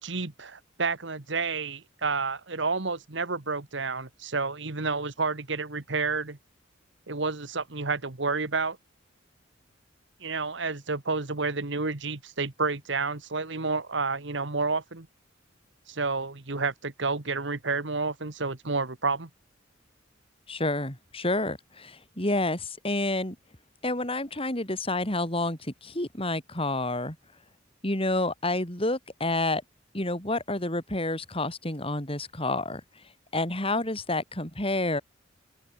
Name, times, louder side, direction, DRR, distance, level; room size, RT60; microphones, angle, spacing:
voice 1, 0.0-6.4 7.1-8.8 10.2-15.1 15.9-19.3, right 4 dB, 65° right, 1.6 m, -30 dB
voice 2, 20.5-23.3 23.8-27.2 27.8-29.6 29.9-32.8 33.3-35.0, left 2 dB, 30° left, 6.8 m, -29 dB
open air
head